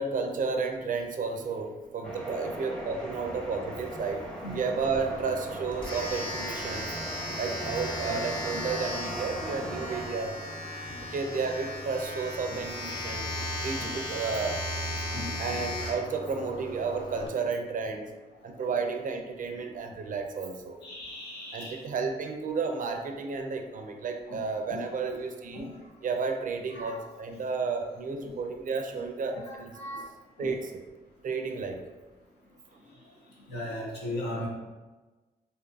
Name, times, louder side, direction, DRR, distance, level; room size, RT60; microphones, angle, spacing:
voice 1, 0.0-6.9 7.4-10.4 11.1-13.3 13.6-14.6 15.4-18.1 18.4-20.8 21.5-25.7 26.0-29.8 30.4-30.7 31.2-31.8, right 4 dB, 50° right, 5 dB, 0.4 m, -32 dB
sound 1, 2.0-10.1, right 1 dB, 5° left, 0.7 m, -39 dB
Domestic sounds home sounds, 4.8-17.3, left 1 dB, 25° left, 1.0 m, -36 dB
voice 2, 20.8-21.8 24.3-24.8 25.5-25.6 26.7-27.0 29.3-30.0 30.4-30.5 33.5-34.5, left 1 dB, 85° left, -4 dB, 0.7 m, -38 dB
2.7 x 2.4 x 2.2 m, 1.2 s
cardioid pair, 55°, 18 cm